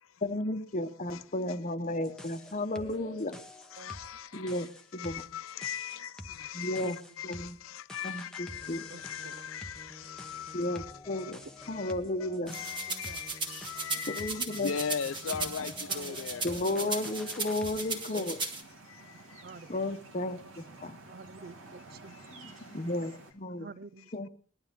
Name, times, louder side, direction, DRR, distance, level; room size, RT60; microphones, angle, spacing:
voice 1, 0.2-3.4 4.3-5.2 6.5-7.0 7.2-7.6 8.0-8.9 10.5-11.4 11.7-12.6 14.1-14.7 15.4-15.7 16.4-18.4 19.7-21.0 22.4-23.7 24.1-24.3, left 2 dB, 40° left, 1.0 m, -34 dB
sound 1, 1.9-17.9, left 1 dB, 5° left, 0.9 m, -48 dB
voice 2, 3.7-11.9 12.5-16.5 18.8-19.4 22.1-22.7, left 7 dB, 85° left, 0.5 m, -40 dB
voice 3, 8.9-9.4 12.3-12.5 12.9-13.2 14.7-14.8 15.3-15.4 15.9-16.2 16.5-16.9 18.1-18.3 19.4-19.9 21.1-22.2 23.6-24.3, right 4 dB, 50° right, 0.6 m, -48 dB
sound 2, 12.5-18.6, right 4 dB, 25° right, 1.7 m, -37 dB
sound 3, 14.6-23.3, right 2 dB, 85° right, 2.3 m, -52 dB
20.0 x 12.0 x 3.7 m
head